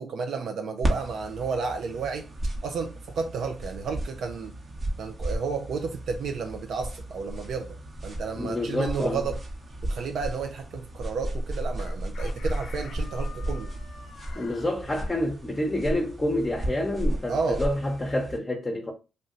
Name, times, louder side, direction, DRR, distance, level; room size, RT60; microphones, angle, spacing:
voice 1, 0.0-2.3 2.6-4.5 5.0-7.8 8.0-9.4 9.8-13.7 17.3-17.6, right 5 dB, 70° right, 0.4 m, -32 dB
sound 1, 0.8-18.4, right 1 dB, 45° right, 0.9 m, -34 dB
voice 2, 8.4-9.3 14.3-18.9, left 1 dB, 25° left, 0.7 m, -28 dB
Chicken rooster, 11.8-14.7, left 5 dB, 60° left, 0.5 m, -47 dB
2.7 x 2.1 x 3.7 m
supercardioid pair, 55°, 0 cm